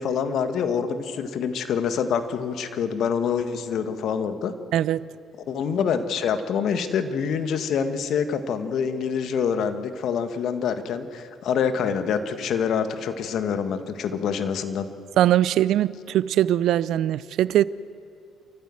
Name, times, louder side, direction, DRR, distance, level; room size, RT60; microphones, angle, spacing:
voice 1, 0.0-4.5 5.5-14.9, left 7 dB, 60° left, 1.7 m, -26 dB
voice 2, 4.7-5.0 15.2-17.6, right 12 dB, 65° right, 0.5 m, -21 dB
28.5 x 14.5 x 7.8 m
hypercardioid pair, 50°, 0 cm